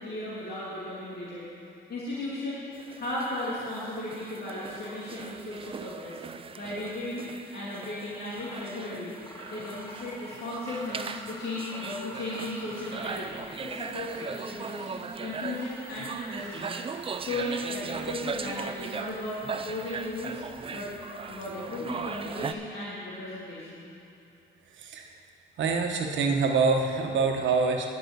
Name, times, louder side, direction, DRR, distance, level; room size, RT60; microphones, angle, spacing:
voice 1, 0.0-1.4 1.9-2.7 3.0-6.2 6.6-9.2 9.5-14.8 15.2-16.8 17.2-20.4 20.7-20.9 21.3-23.9, left 2 dB, 55° left, -9 dB, 2.6 m, -36 dB
sound 1, 2.7-22.5, right 5 dB, 30° right, 0.4 m, -39 dB
Mechanisms, 7.7-7.8 8.3-8.7 9.2-17.0, equal, 15° left, 1.8 m, -46 dB
voice 2, 24.8-25.1 25.6-27.9, right 4 dB, 70° right, 2 dB, 1.3 m, -25 dB
10.5 x 5.5 x 8.2 m, 2.7 s
cardioid pair, 90°, 20 cm